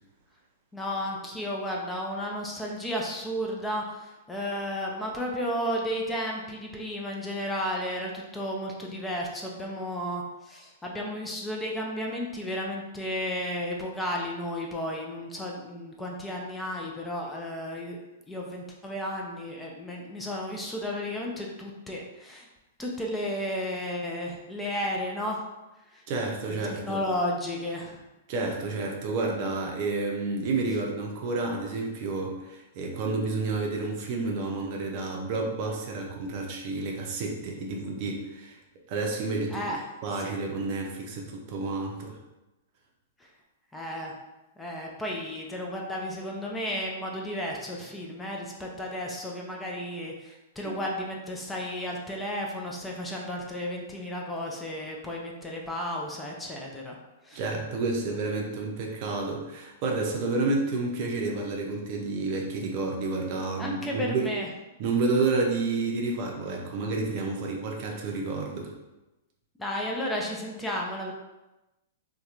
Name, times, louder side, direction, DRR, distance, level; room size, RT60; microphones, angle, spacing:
voice 1, 0.7-18.0 18.3-22.5 22.8-25.5 25.9-26.0 26.8-28.0 39.5-39.8 40.2-40.4 43.2-43.3 43.7-44.2 44.6-57.0 57.2-57.4 63.6-64.5 69.6-71.1, equal, 10° left, -1 dB, 0.4 m, -33 dB
voice 2, 26.1-27.0 28.3-38.6 38.9-39.7 40.0-42.2 50.6-50.7 57.3-64.3 64.8-68.7, right 3 dB, 50° right, 0 dB, 0.5 m, -30 dB
2.7 x 2.2 x 2.4 m, 1.0 s
hypercardioid pair, 115°, 0 cm